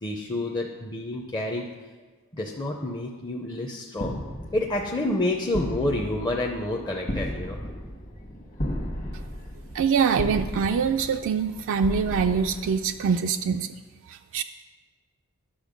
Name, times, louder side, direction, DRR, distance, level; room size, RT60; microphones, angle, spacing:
voice 1, 0.0-1.7 2.3-4.2 4.5-7.6, left 1 dB, 20° left, 0 dB, 0.6 m, -28 dB
sound 1, 4.0-13.3, equal, 40° left, 1.3 m, -35 dB
voice 2, 9.7-13.7 14.0-14.4, right 6 dB, 60° right, 7 dB, 0.3 m, -24 dB
10.0 x 6.6 x 5.1 m, 1.3 s
head